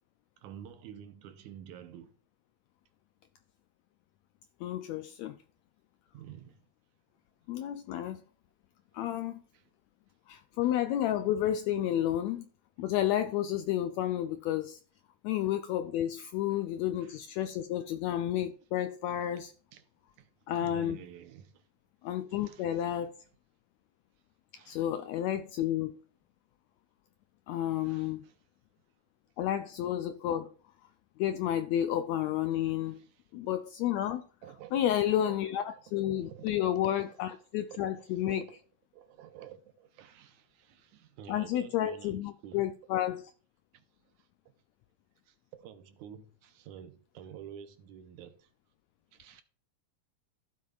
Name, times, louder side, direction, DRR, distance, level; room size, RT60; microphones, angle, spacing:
voice 1, 0.4-2.2 6.1-6.7 9.5-9.7 10.6-10.7 16.5-16.6 17.0-17.2 19.7-19.8 20.2-20.3 20.6-21.7 22.3-23.0 24.6-24.9 27.7-28.4 32.8-33.1 34.4-35.8 36.2-37.4 37.7-38.6 38.9-42.6 43.7-43.8 44.2-44.3 45.3-48.5 49.1-49.4, right 9 dB, 75° right, 2.2 m, -50 dB
voice 2, 4.6-5.4 7.5-8.2 8.9-9.4 10.3-12.4 12.8-14.8 15.2-19.5 20.5-21.0 22.0-23.1 24.7-26.0 27.5-28.2 29.4-30.5 31.2-33.0 33.3-34.2 34.7-38.4 41.3-43.3, left 11 dB, 85° left, 1.6 m, -31 dB
15.0 x 7.5 x 2.4 m
omnidirectional pair, 3.6 m